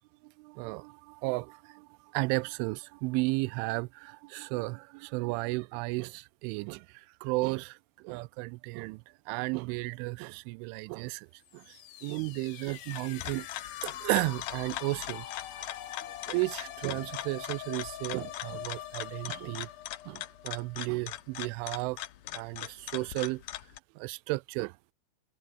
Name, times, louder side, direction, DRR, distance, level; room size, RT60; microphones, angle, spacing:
voice 1, 0.4-1.9 2.1-6.9 7.2-7.8 8.0-9.0 9.3-11.3 11.5-11.6 12.0-13.5 13.8-15.3 15.6-15.7 16.2-19.7 20.1-22.0 22.3-23.4 24.0-24.7, right 24 dB, 90° right, 3.0 m, -33 dB
sound 1, 11.5-21.2, left 12 dB, 65° left, 3.6 m, -44 dB
sound 2, 12.7-23.8, left 14 dB, 85° left, 1.8 m, -41 dB
omnidirectional pair, 5.5 m